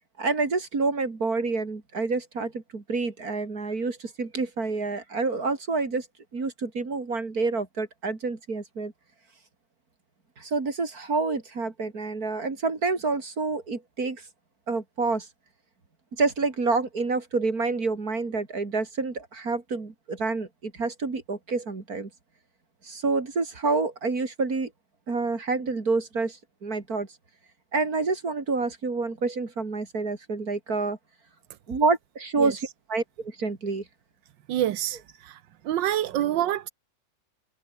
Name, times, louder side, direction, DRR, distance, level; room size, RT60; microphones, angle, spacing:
voice 1, 0.2-6.1 6.3-8.9 10.4-14.2 14.7-15.3 16.1-22.1 22.8-24.7 25.1-27.1 27.7-31.0 31.7-32.6 32.9-33.8, right 3 dB, 50° right, 3.5 m, -28 dB
voice 2, 34.5-35.4 35.6-36.7, right 12 dB, 80° right, 1.6 m, -27 dB
omnidirectional pair, 2.0 m